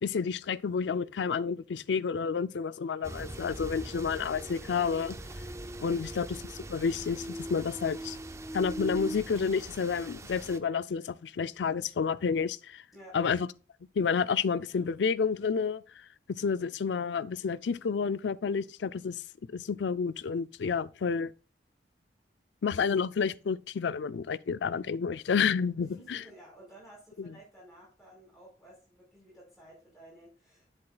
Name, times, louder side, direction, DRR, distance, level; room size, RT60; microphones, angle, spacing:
voice 1, 0.0-5.2 5.8-6.4 6.7-8.2 8.5-12.8 13.1-13.5 14.0-15.8 16.3-19.2 19.5-21.3 22.6-26.2 27.2-27.3, left 6 dB, 75° left, 0.4 m, -30 dB
sound 1, 3.0-10.6, right 1 dB, 15° right, 0.5 m, -41 dB
voice 2, 26.0-30.8, right 1 dB, ahead, 4.8 m, -53 dB
11.0 x 7.1 x 2.3 m
head